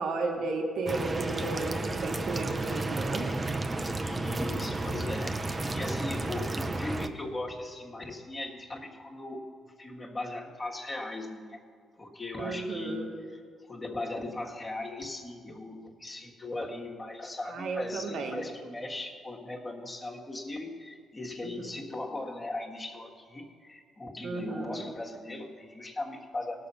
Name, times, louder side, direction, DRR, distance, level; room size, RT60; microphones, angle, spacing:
voice 1, 0.0-3.3 12.4-13.1 17.5-18.4 21.4-21.7 24.2-24.9, right 3 dB, 70° right, 2 dB, 1.4 m, -34 dB
sound 1, 0.9-7.1, right 2 dB, 25° right, 0.7 m, -32 dB
voice 2, 4.0-5.4 5.7-9.5 9.8-11.6 12.0-13.4 13.7-26.7, left 2 dB, 25° left, -1 dB, 1.5 m, -38 dB
18.0 x 6.8 x 5.6 m, 2.1 s
cardioid pair, 90°, 0 cm